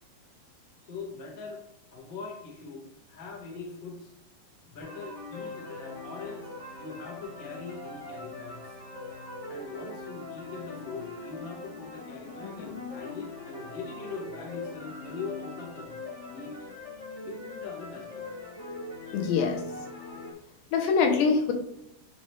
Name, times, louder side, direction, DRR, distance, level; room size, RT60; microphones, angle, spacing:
voice 1, 0.8-1.6 1.9-4.1 4.7-6.5 6.8-8.8 9.5-15.9 16.3-16.6 17.2-18.3, left 4 dB, 60° left, -2 dB, 0.9 m, -42 dB
sound 1, 4.8-20.3, left 3 dB, 30° left, 1.2 m, -41 dB
voice 2, 19.1-19.8 20.7-21.5, left 5 dB, 90° left, 3 dB, 3.2 m, -24 dB
9.9 x 3.3 x 3.4 m, 0.82 s
omnidirectional pair, 4.7 m